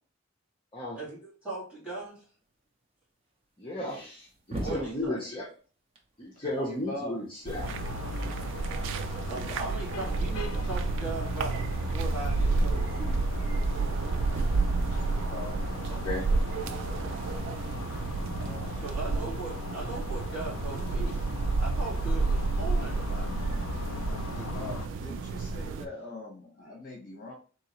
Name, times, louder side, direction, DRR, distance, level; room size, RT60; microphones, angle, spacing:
voice 1, 1.0-2.2 4.6-5.2 9.3-11.6 11.9-13.1 18.8-23.3, right 3 dB, 5° right, -8 dB, 2.0 m, -38 dB
sound 1, 2.1-2.2 2.5-2.6 3.3-3.4 3.8-5.6 6.0-12.2 12.5-12.8 13.2-13.3 13.5-19.8 20.7-21.2, right 1 dB, 30° right, 0.7 m, -47 dB
voice 2, 3.6-5.5 6.2-7.7 15.9-16.3, left 1 dB, 25° left, -4 dB, 0.7 m, -34 dB
voice 3, 6.7-7.2 9.1-9.7 15.1-15.6 18.4-18.8 23.8-24.0 24.3-27.3, left 2 dB, 45° left, -1 dB, 1.2 m, -42 dB
sound 2, 7.5-25.9, right 3 dB, 65° right, 0.3 m, -30 dB
sound 3, 7.6-24.9, left 5 dB, 80° left, 0.4 m, -40 dB
3.7 x 2.9 x 3.0 m, 0.38 s
head